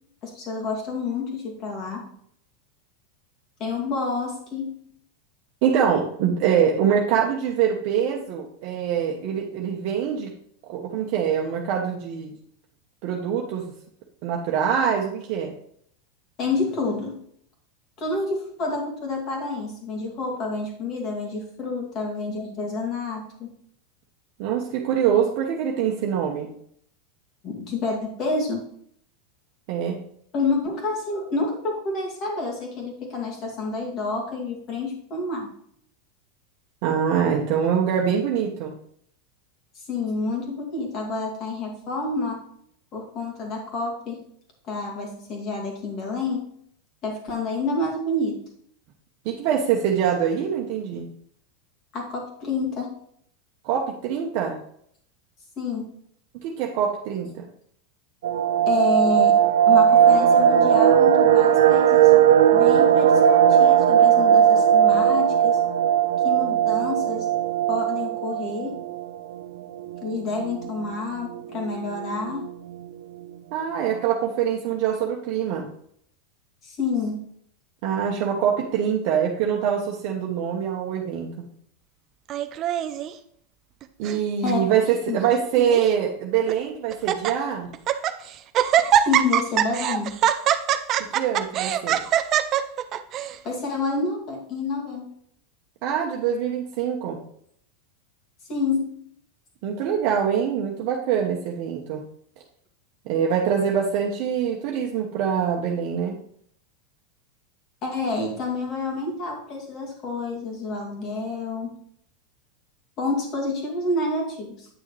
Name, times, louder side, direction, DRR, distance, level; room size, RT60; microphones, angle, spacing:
voice 1, 0.2-2.1 3.6-4.8 16.4-17.2 18.0-23.5 27.4-28.6 30.3-35.5 39.7-42.4 42.9-44.2 44.6-46.5 47.0-48.4 51.9-53.0 55.6-55.9 58.7-59.4 59.7-62.3 62.5-65.6 66.2-67.3 67.7-68.8 70.0-72.5 76.6-77.3 84.4-84.7 85.1-85.2 89.1-90.2 93.4-95.1 98.5-98.9 107.8-111.7 113.0-114.7, left 3 dB, 35° left, 1 dB, 2.3 m, -28 dB
voice 2, 5.6-10.3 10.6-12.3 13.0-13.6 14.2-15.5 24.4-26.5 29.7-30.0 36.8-38.8 49.2-51.1 53.6-54.6 56.3-57.5 73.5-75.7 77.8-81.4 84.0-87.7 91.1-92.0 95.8-97.2 99.6-102.0 103.1-106.1, right 8 dB, 50° right, 0 dB, 1.0 m, -24 dB
sound 1, 58.2-69.0 69.3-69.4 69.8-70.0 70.4-70.8 71.4-71.5 71.6-72.2 72.4-72.5, right 9 dB, 90° right, 0.4 m, -18 dB
Laughter, 82.3-83.1 83.8-84.2 84.5-84.6 85.3-85.9 86.5-86.6 86.9-87.3 87.7-88.2 88.5-93.3, right 10 dB, 30° right, 0.5 m, -22 dB
9.0 x 6.3 x 3.3 m, 0.66 s
supercardioid pair, 155°, 0 cm